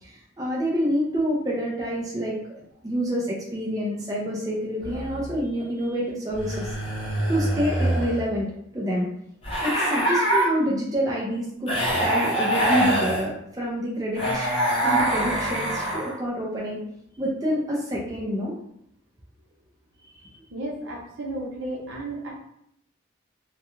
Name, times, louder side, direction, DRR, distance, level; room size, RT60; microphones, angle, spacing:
voice 1, 0.0-6.7 7.3-8.5 8.7-9.1 9.6-11.7 12.0-14.5 14.8-16.8 17.2-18.5 20.2-20.3, equal, 20° right, -4 dB, 0.4 m, -27 dB
sound 1, 4.8-5.4 6.3-8.3 9.4-10.5 11.7-13.2 14.1-16.2, right 1 dB, 30° left, 0.6 m, -24 dB
voice 2, 20.5-22.3, right 1 dB, 75° right, -3 dB, 0.7 m, -33 dB
2.3 x 2.2 x 2.9 m, 0.73 s
head